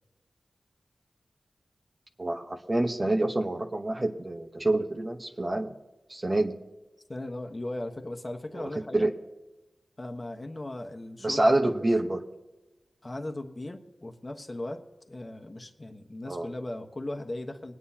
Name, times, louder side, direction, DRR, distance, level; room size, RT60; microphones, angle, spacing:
voice 1, 2.2-5.7 6.1-6.6 8.5-9.1 11.2-12.2 16.3-16.5, right 1 dB, 35° right, 3 dB, 1.0 m, -27 dB
voice 2, 7.1-9.1 10.0-11.4 11.8-11.9 13.0-17.8, left 1 dB, 30° left, 3 dB, 1.2 m, -38 dB
22.0 x 9.3 x 2.9 m, 1.1 s
wide cardioid pair, 75°, 0 cm